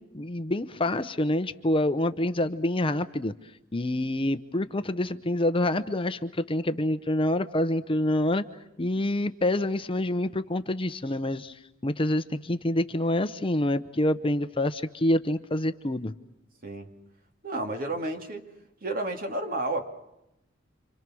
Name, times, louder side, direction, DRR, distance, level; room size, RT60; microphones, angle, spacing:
voice 1, 0.0-3.3 3.7-8.4 8.8-11.6 11.8-16.1, left 1 dB, 30° left, 11 dB, 0.8 m, -27 dB
voice 2, 17.4-18.5 18.8-19.9, right 2 dB, 50° right, 5 dB, 2.6 m, -31 dB
29.5 x 25.5 x 6.3 m, 0.86 s
head